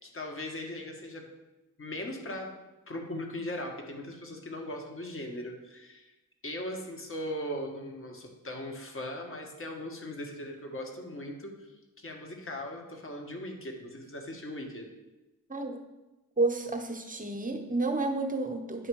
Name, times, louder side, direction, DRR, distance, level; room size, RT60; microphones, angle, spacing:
voice 1, 0.0-1.3 1.8-2.6 2.9-6.1 6.4-11.7 12.0-14.9, left 1 dB, 35° left, 2 dB, 1.6 m, -39 dB
voice 2, 16.4-18.9, right 3 dB, 20° right, 4 dB, 1.1 m, -30 dB
9.8 x 3.3 x 4.8 m, 1.0 s
cardioid pair, 60°, 36 cm